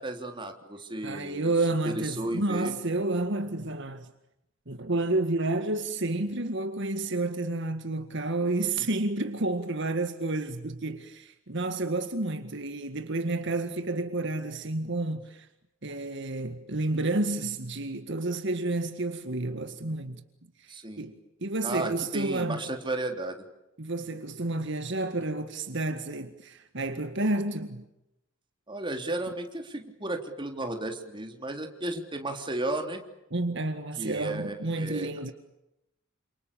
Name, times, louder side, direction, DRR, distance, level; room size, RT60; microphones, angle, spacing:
voice 1, 0.0-1.5 1.9-2.7 20.7-21.1 21.6-23.4 28.7-33.0 34.0-35.1, right 2 dB, 25° right, 3.6 m, -34 dB
voice 2, 1.0-4.1 4.7-15.5 15.8-20.2 20.6-22.6 23.8-27.8 33.3-35.3, right 2 dB, 60° right, 1.9 m, -30 dB
29.0 x 28.0 x 7.1 m
head